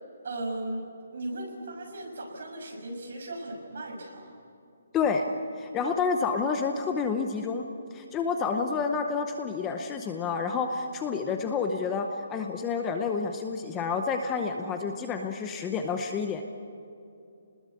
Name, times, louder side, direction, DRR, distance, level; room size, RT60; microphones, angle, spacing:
voice 1, 0.2-4.3, right 1 dB, 50° right, 1 dB, 6.3 m, -37 dB
voice 2, 4.9-5.2 5.6-7.6 7.9-16.4, left 5 dB, 10° left, 5 dB, 0.8 m, -29 dB
30.0 x 20.0 x 8.5 m, 2.6 s
hypercardioid pair, 180°, 0 cm